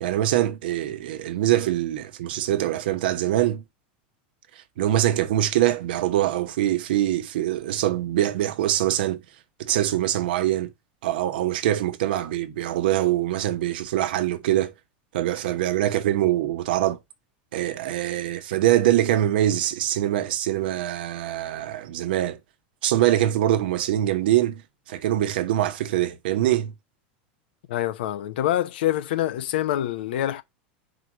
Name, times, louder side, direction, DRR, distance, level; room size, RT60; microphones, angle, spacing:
voice 1, 0.0-3.6 4.8-9.2 9.6-10.7 11.0-14.7 15.1-17.0 17.5-22.4 22.8-24.6 24.9-26.7, right 13 dB, 75° right, 1.0 m, -23 dB
voice 2, 27.7-30.4, left 12 dB, 80° left, 0.8 m, -25 dB
4.9 x 4.7 x 6.0 m
supercardioid pair, 130°, 5 cm